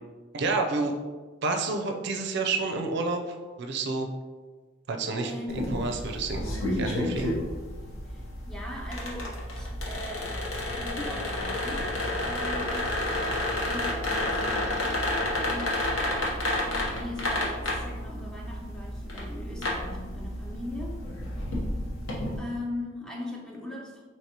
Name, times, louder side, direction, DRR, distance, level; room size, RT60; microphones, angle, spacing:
voice 1, 0.3-0.9 1.4-4.1 4.9-7.4, right 3 dB, 55° right, 4 dB, 0.4 m, -29 dB
voice 2, 5.2-5.6 8.1-12.0 12.2-12.9 13.5-21.1 22.4-24.0, left 1 dB, 5° left, -1 dB, 0.4 m, -40 dB
sound 1, 5.5-22.4, left 1 dB, 70° left, 1.0 m, -31 dB
4.6 x 3.1 x 2.8 m, 1.3 s
head